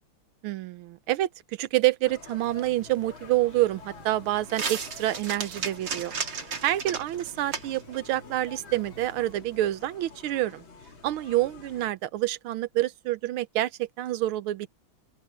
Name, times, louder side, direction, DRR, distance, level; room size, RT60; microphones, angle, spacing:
voice 1, 0.4-1.3 1.6-6.1 6.6-10.6 11.0-14.7, right 15 dB, 85° right, 1.6 m, -27 dB
sound 1, 2.0-11.9, left 5 dB, 70° left, 3.5 m, -49 dB
sound 2, 2.4-9.3, right 5 dB, 60° right, 2.8 m, -37 dB
open air
omnidirectional pair, 2.2 m